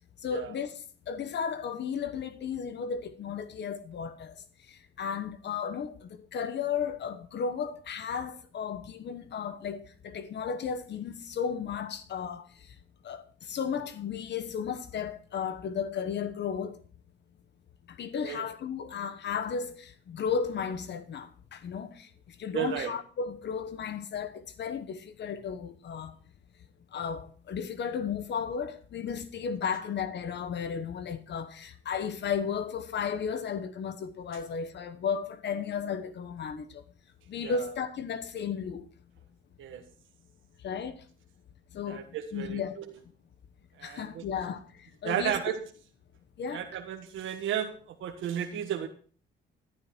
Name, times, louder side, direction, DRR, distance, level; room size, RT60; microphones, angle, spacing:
voice 1, 0.2-12.7 13.0-16.8 17.9-26.1 26.9-36.8 37.3-38.9 40.6-41.0 41.7-42.0 42.3-42.8 43.8-45.4 46.4-46.7, left 6 dB, 60° left, 1.1 m, -34 dB
voice 2, 22.5-22.9 37.4-37.6 39.6-39.8 41.9-42.6 43.8-44.2 45.0-45.6 46.5-48.9, right 10 dB, 80° right, 1.5 m, -33 dB
12.0 x 11.0 x 4.5 m
cardioid pair, 90°, 20 cm